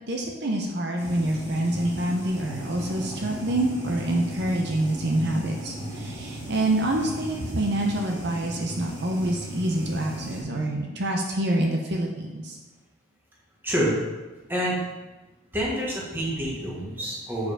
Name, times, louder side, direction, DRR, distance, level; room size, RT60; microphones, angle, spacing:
voice 1, 0.1-12.6, right 1 dB, 55° right, 1 dB, 0.8 m, -26 dB
sound 1, 1.0-10.4, equal, 85° right, 2.7 m, -36 dB
voice 2, 13.6-14.0 14.5-14.8 15.5-17.5, equal, 10° right, -4 dB, 1.4 m, -27 dB
6.9 x 4.9 x 5.0 m, 1.2 s
head